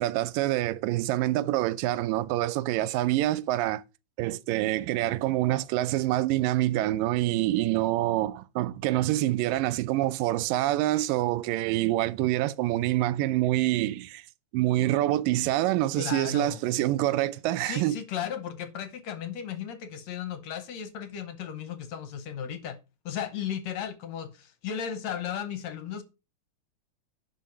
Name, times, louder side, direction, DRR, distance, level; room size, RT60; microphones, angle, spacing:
voice 1, 0.0-3.8 4.2-14.2 14.5-18.0, right 15 dB, 85° right, 2.3 m, -26 dB
voice 2, 16.0-16.6 17.6-22.8 23.1-26.0, left 8 dB, 65° left, 1.9 m, -35 dB
11.0 x 5.5 x 5.7 m
omnidirectional pair, 3.8 m